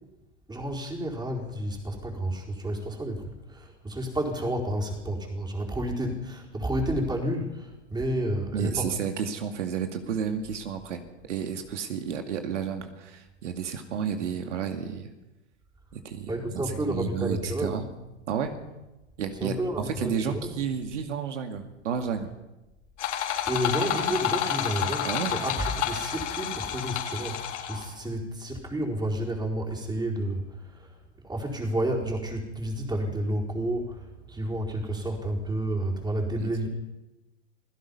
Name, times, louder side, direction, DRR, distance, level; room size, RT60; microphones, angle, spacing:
voice 1, 0.5-8.9 16.3-17.7 19.4-20.5 23.5-36.7, right 1 dB, 10° right, 0 dB, 4.5 m, -30 dB
voice 2, 8.5-11.0 11.3-15.1 15.9-17.9 18.3-18.5 19.2-19.6 19.9-22.3 25.0-25.4 36.4-36.7, right 7 dB, 80° right, 6 dB, 2.3 m, -31 dB
sound 1, 23.0-27.9, left 10 dB, 75° left, 4.5 m, -30 dB
28.5 x 16.5 x 5.5 m, 1.0 s
hypercardioid pair, 115°, 36 cm